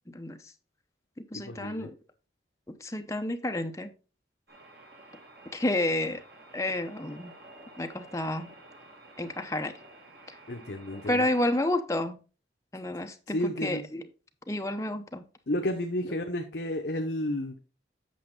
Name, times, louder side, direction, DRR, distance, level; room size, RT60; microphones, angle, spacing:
voice 1, 0.1-0.5 1.2-1.9 2.7-3.9 5.5-6.2 6.5-7.3 7.8-8.5 9.2-9.7 11.1-12.2 12.7-14.0 14.5-15.3, left 1 dB, 15° left, 0.7 m, -30 dB
voice 2, 1.3-1.9 10.5-11.3 13.3-13.8 15.5-17.5, left 1 dB, 65° left, 0.9 m, -31 dB
sound 1, 4.5-11.7, right 1 dB, 60° right, 2.2 m, -51 dB
8.5 x 6.4 x 3.8 m
head